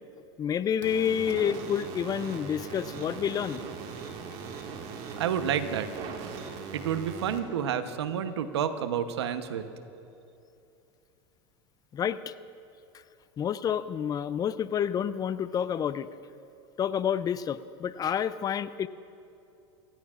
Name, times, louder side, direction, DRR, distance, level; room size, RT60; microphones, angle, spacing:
voice 1, 0.4-3.6 11.9-12.3 13.4-16.1 16.8-18.9, left 8 dB, 30° left, 15 dB, 0.4 m, -29 dB
sound 1, 0.8-7.4, right 5 dB, 50° right, 1.9 m, -40 dB
voice 2, 5.2-5.9 6.7-9.6, right 8 dB, 90° right, 10 dB, 0.9 m, -29 dB
25.0 x 16.5 x 2.5 m, 2.7 s
supercardioid pair, 110°, 14 cm